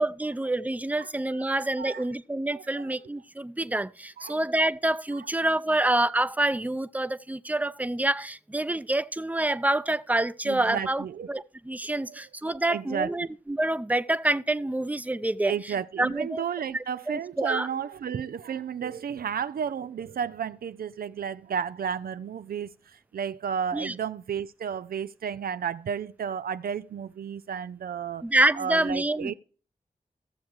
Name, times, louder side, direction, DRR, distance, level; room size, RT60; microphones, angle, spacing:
voice 1, 0.0-15.5 16.0-16.4 16.7-17.7 23.7-23.9 28.2-29.3, right 1 dB, 10° right, 0.6 m, -27 dB
voice 2, 1.5-2.0 2.5-2.9 4.2-4.4 10.4-11.3 12.1-12.2 12.7-13.1 15.4-28.2 28.6-29.3, right 7 dB, 90° right, 0.4 m, -33 dB
15.0 x 7.2 x 3.1 m
cardioid pair, 45°, 15 cm